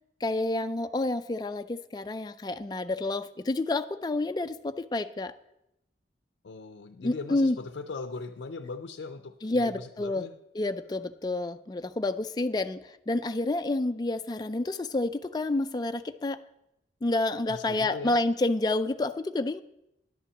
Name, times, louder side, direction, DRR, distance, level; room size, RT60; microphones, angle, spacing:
voice 1, 0.2-5.3 7.0-7.6 9.4-10.3 10.5-12.8 13.1-16.4 17.0-19.6, left 2 dB, 20° left, 9 dB, 0.3 m, -29 dB
voice 2, 6.4-10.4 17.5-18.2, left 4 dB, 90° left, 8 dB, 0.5 m, -39 dB
10.5 x 5.6 x 7.2 m, 0.86 s
head